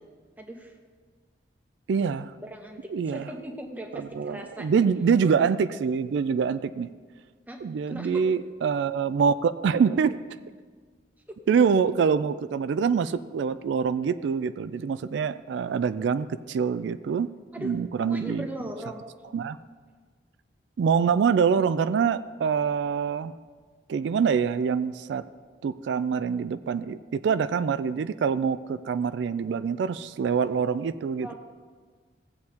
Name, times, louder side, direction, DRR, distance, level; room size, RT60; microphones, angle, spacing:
voice 1, 0.4-0.8 2.4-4.8 7.5-7.6 7.9-8.2 11.3-11.4 17.5-19.0 31.2-31.3, equal, 10° right, 3 dB, 0.8 m, -39 dB
voice 2, 1.9-2.3 2.9-3.3 3.9-6.9 7.6-10.2 11.5-17.3 17.6-18.5 19.3-19.6 20.8-23.3 23.9-25.2 25.6-31.3, right 6 dB, 85° right, 13 dB, 0.3 m, -25 dB
16.5 x 7.8 x 2.8 m, 1.5 s
head